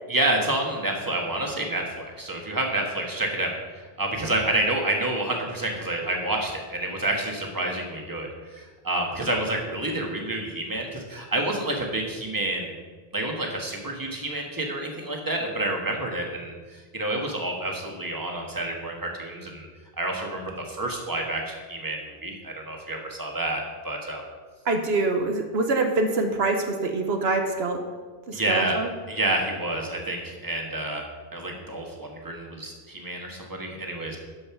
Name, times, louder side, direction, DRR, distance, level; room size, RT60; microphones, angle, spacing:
voice 1, 0.1-12.7 13.1-19.7 20.0-24.2 28.3-28.8 29.1-31.0 31.3-34.2, right 1 dB, 20° right, 1 dB, 1.5 m, -29 dB
voice 2, 24.7-27.8 28.3-28.9, right 3 dB, 75° right, 5 dB, 1.1 m, -25 dB
12.5 x 5.5 x 5.8 m, 1.4 s
omnidirectional pair, 1.1 m